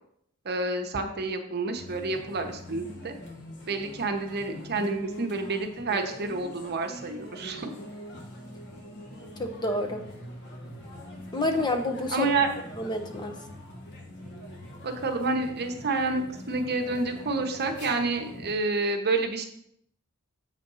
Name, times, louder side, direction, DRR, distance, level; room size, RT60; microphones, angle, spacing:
voice 1, 0.4-3.1 3.7-7.7 12.1-12.5 14.8-19.4, right 3 dB, 50° right, 5 dB, 0.9 m, -29 dB
sound 1, 1.7-18.6, equal, 55° left, 1.3 m, -43 dB
voice 2, 9.4-10.0 11.3-12.3 12.8-13.4, left 2 dB, 20° left, 5 dB, 0.7 m, -28 dB
7.4 x 4.2 x 5.5 m, 0.72 s
head